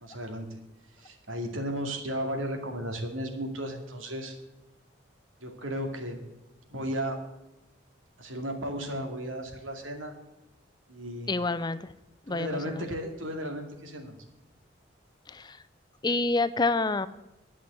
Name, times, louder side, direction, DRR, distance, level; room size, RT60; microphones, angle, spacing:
voice 1, 0.0-0.5 1.0-4.4 5.4-6.2 6.7-7.2 8.2-10.1 10.9-11.3 12.3-14.1, equal, 90° right, 3 dB, 2.4 m, -34 dB
voice 2, 11.3-11.9 12.3-12.8 15.3-15.6 16.0-17.1, left 3 dB, 20° left, 14 dB, 0.5 m, -28 dB
11.5 x 6.2 x 9.3 m, 0.96 s
head